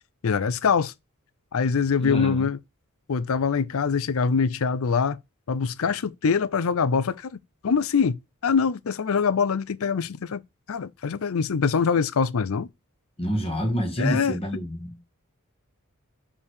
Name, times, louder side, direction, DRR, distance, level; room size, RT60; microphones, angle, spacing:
voice 1, 0.2-0.9 1.5-2.6 3.1-5.2 5.5-7.4 7.6-10.4 10.7-12.7 14.0-14.4, left 5 dB, 70° left, 0.5 m, -24 dB
voice 2, 2.0-2.5 13.2-15.0, equal, 25° left, 2.0 m, -27 dB
5.7 x 4.8 x 6.5 m
head